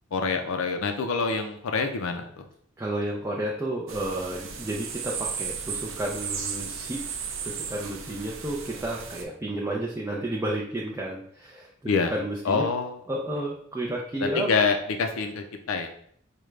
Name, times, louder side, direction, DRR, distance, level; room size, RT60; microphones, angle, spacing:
voice 1, 0.1-2.2 11.9-12.1 12.5-12.9 14.2-15.9, left 4 dB, 75° left, 5 dB, 0.4 m, -26 dB
voice 2, 2.8-7.1 7.4-11.7 12.0-12.7 13.1-14.5, right 1 dB, 15° right, -3 dB, 0.4 m, -31 dB
sound 1, 3.9-9.2, right 6 dB, 65° right, 0.5 m, -35 dB
4.9 x 2.2 x 3.1 m, 0.64 s
head